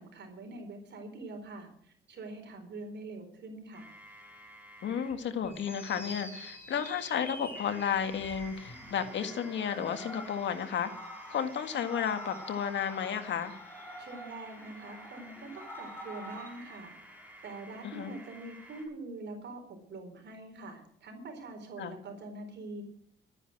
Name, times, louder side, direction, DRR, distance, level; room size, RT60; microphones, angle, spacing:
voice 1, 0.0-3.9 14.0-16.9 17.4-22.8, right 2 dB, 60° right, 4 dB, 4.5 m, -44 dB
sound 1, 3.7-5.1 5.4-18.8, equal, 5° right, 6.0 m, -53 dB
voice 2, 4.8-10.9 11.3-13.6 17.8-18.1 21.8-22.0, left 8 dB, 65° left, 9 dB, 1.9 m, -33 dB
sound 2, 5.5-16.8, left 1 dB, 10° left, 4.0 m, -46 dB
13.0 x 9.8 x 7.6 m, 0.67 s
cardioid pair, 90°, 20 cm